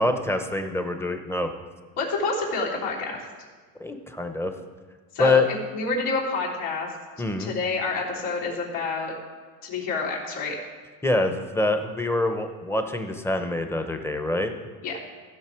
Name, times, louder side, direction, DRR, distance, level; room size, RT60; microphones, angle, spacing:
voice 1, 0.0-1.5 3.8-4.5 5.2-5.5 7.2-7.5 11.0-14.5, left 2 dB, 5° left, 6 dB, 0.9 m, -25 dB
voice 2, 2.0-3.2 5.1-5.4 5.7-6.9 7.4-9.1 9.6-10.6 14.8-15.0, left 3 dB, 80° left, -5 dB, 3.4 m, -28 dB
16.0 x 5.7 x 4.5 m, 1.5 s
supercardioid pair, 105°, 48 cm